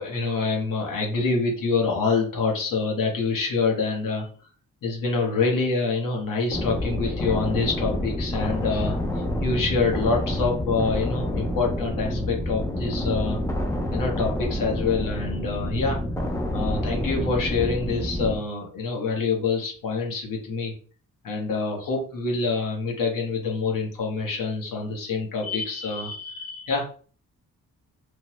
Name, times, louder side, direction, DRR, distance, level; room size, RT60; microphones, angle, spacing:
voice 1, 0.0-4.3 4.8-9.0 9.4-13.4 13.9-16.0 16.5-20.7 21.2-26.9, left 4 dB, 75° left, 0 dB, 1.0 m, -26 dB
sound 1, 6.5-18.4, left 1 dB, 10° left, 0.4 m, -28 dB
3.2 x 2.0 x 2.9 m, 0.40 s
wide cardioid pair, 135°, 33 cm